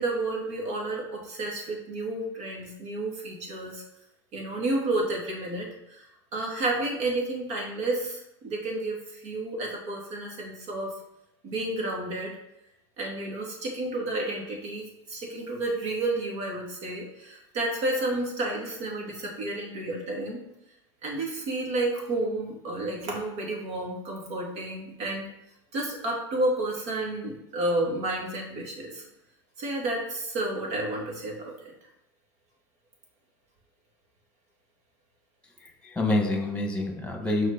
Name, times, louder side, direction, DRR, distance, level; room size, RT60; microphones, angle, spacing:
voice 1, 0.0-3.8 4.3-6.1 6.3-10.9 11.4-12.3 13.0-20.4 21.0-25.3 25.7-29.0 29.6-31.5, right 2 dB, 55° right, -1 dB, 2.8 m, -31 dB
voice 2, 35.6-37.5, left 2 dB, 5° left, 2 dB, 1.9 m, -27 dB
6.4 x 4.4 x 5.4 m, 0.84 s
hypercardioid pair, 95°, 15 cm